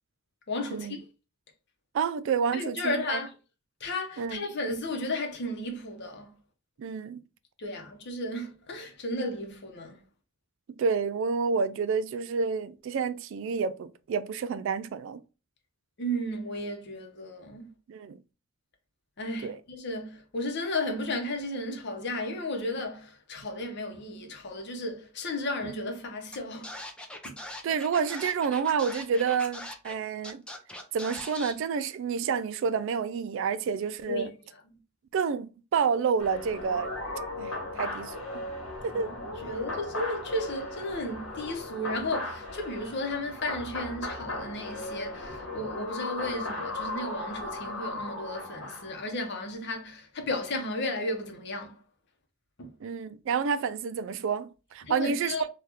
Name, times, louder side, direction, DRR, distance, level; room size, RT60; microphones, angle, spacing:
voice 1, 0.5-1.0 2.5-3.3 3.8-6.3 7.6-10.0 16.0-17.7 19.2-26.7 27.2-27.4 34.1-34.3 38.9-51.8 52.6-52.7 54.8-55.5, left 1 dB, 55° left, 0.8 m, -34 dB
voice 2, 1.9-3.2 4.2-4.4 6.8-7.2 10.8-15.2 17.9-18.2 19.4-19.6 27.6-30.4 30.9-34.3 35.1-36.9 37.4-38.4 38.8-39.1 52.8-55.3, right 6 dB, 65° right, 0.3 m, -29 dB
Scratching (performance technique), 26.3-26.4 26.6-29.9 30.2-31.5, left 1 dB, 5° left, 0.4 m, -41 dB
sound 1, 36.2-49.1, left 2 dB, 90° left, 1.1 m, -37 dB
3.4 x 2.3 x 2.9 m
head